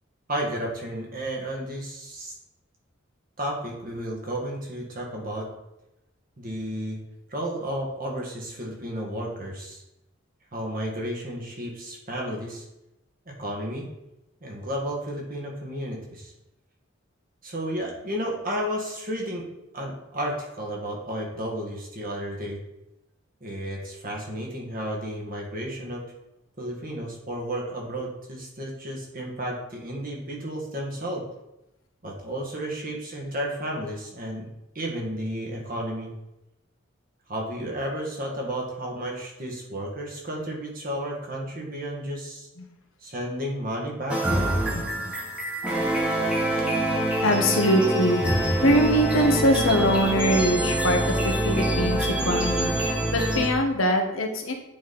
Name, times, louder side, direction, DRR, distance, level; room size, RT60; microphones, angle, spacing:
voice 1, 0.3-2.3 3.4-5.4 6.4-7.0 7.3-9.8 10.5-12.6 13.2-13.9 14.4-16.3 17.4-19.4 19.7-22.6 23.4-26.0 26.6-31.2 32.0-34.5 34.7-36.1 37.3-42.5 43.0-44.5, equal, 45° right, -1 dB, 1.6 m, -32 dB
sound 1, 44.1-53.5, right 1 dB, 5° right, 1.3 m, -25 dB
voice 2, 44.7-45.1 47.2-54.5, equal, 85° left, 3 dB, 1.1 m, -23 dB
8.5 x 4.0 x 4.2 m, 0.91 s
head